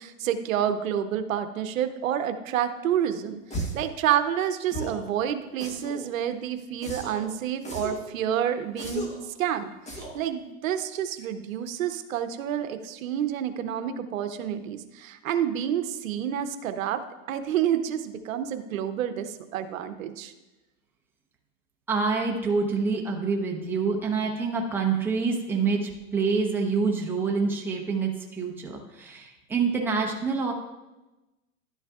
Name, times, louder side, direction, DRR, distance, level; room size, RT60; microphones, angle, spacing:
voice 1, 0.0-9.1 9.4-17.0 17.3-20.3, right 10 dB, 80° right, 9 dB, 0.8 m, -29 dB
sound 1, 3.5-3.9 4.7-5.1 5.6-6.1 6.8-7.3 7.6-8.1 8.8-9.3 9.9-10.2, right 1 dB, 15° left, 1.2 m, -35 dB
voice 2, 21.9-30.5, right 4 dB, 5° right, -1 dB, 0.8 m, -26 dB
11.0 x 8.0 x 2.4 m, 1.1 s
supercardioid pair, 140°, 40 cm